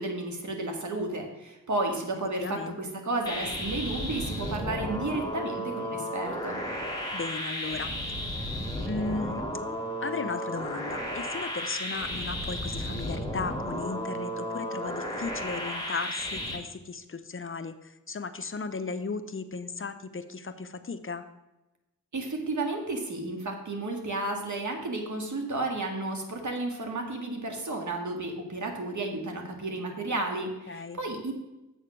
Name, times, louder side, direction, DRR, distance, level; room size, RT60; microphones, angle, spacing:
voice 1, 0.0-6.6 22.1-31.3, right 2 dB, 60° right, 3 dB, 1.8 m, -32 dB
voice 2, 2.4-2.8 7.1-7.9 8.9-9.4 10.0-21.2 30.7-31.0, left 4 dB, 40° left, 10 dB, 0.6 m, -36 dB
sound 1, 3.3-16.6, equal, 10° left, 2.1 m, -33 dB
7.6 x 6.4 x 6.1 m, 1.0 s
wide cardioid pair, 80°, 33 cm